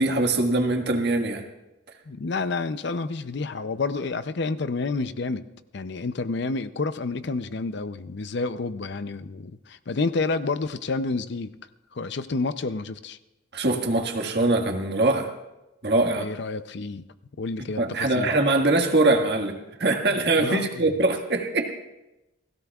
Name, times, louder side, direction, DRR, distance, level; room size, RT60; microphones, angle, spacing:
voice 1, 0.0-1.4 13.5-15.3 15.8-16.3 17.8-21.7, right 2 dB, 55° right, 1.7 m, -23 dB
voice 2, 2.1-5.5 5.7-11.5 11.9-13.2 16.1-17.1 17.4-18.3 20.1-20.9, left 3 dB, 55° left, 0.5 m, -29 dB
30.0 x 16.0 x 2.4 m
head